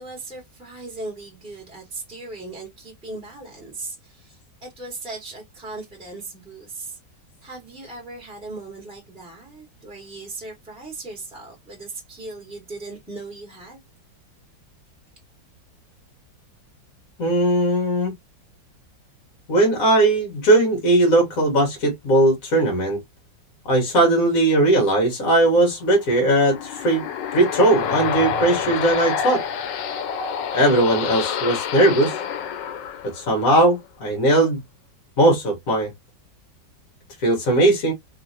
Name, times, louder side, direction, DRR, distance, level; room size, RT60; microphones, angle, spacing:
voice 1, 0.0-7.0 7.4-13.8, right 2 dB, 5° right, 1.5 m, -38 dB
voice 2, 17.2-18.1 19.5-23.0 23.6-27.0 27.3-29.4 30.5-32.2 33.0-34.6 35.2-35.9 37.2-37.9, right 1 dB, 55° left, 1.4 m, -18 dB
sound 1, 26.0-33.6, left 7 dB, 75° left, 1.3 m, -28 dB
3.2 x 2.7 x 2.6 m
omnidirectional pair, 2.0 m